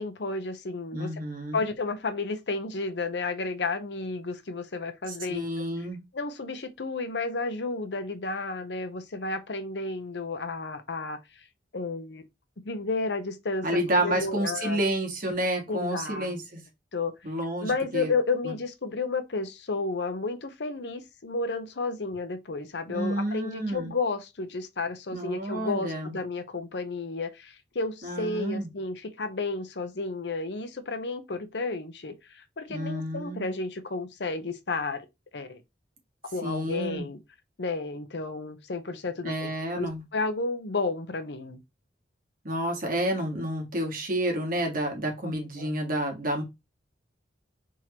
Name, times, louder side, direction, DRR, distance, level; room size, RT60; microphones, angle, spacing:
voice 1, 0.0-1.2 1.5-5.5 6.1-11.2 11.7-12.2 12.6-13.7 13.9-14.8 15.7-16.4 16.9-17.1 17.6-35.1 35.3-35.6 36.3-37.2 37.6-41.6 45.2-45.8, left 3 dB, 70° left, 0.8 m, -32 dB
voice 2, 0.9-1.6 5.1-6.0 13.6-16.6 17.2-18.1 18.4-18.5 22.9-23.9 25.1-26.2 28.0-28.7 32.7-33.5 36.4-37.1 39.2-40.0 42.4-46.4, right 1 dB, 50° right, 1.6 m, -30 dB
4.4 x 3.7 x 3.0 m
head